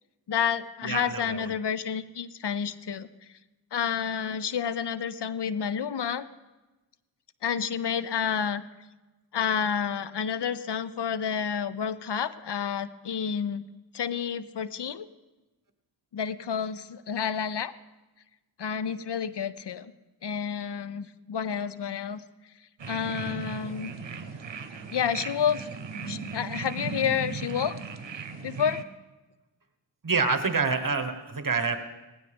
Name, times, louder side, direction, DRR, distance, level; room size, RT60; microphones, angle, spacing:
voice 1, 0.3-3.1 3.7-6.3 7.4-8.6 9.3-13.6 13.9-15.1 16.1-17.7 18.6-19.9 20.2-22.2 22.9-23.9 24.9-25.7 26.1-27.8 28.4-28.8, left 7 dB, 65° left, 14 dB, 0.6 m, -29 dB
voice 2, 0.8-1.5 30.0-31.8, right 4 dB, 50° right, 7 dB, 1.2 m, -27 dB
sound 1, 22.8-28.8, right 5 dB, 80° right, 0.8 m, -37 dB
18.5 x 16.0 x 3.5 m, 1.1 s
wide cardioid pair, 45°, 43 cm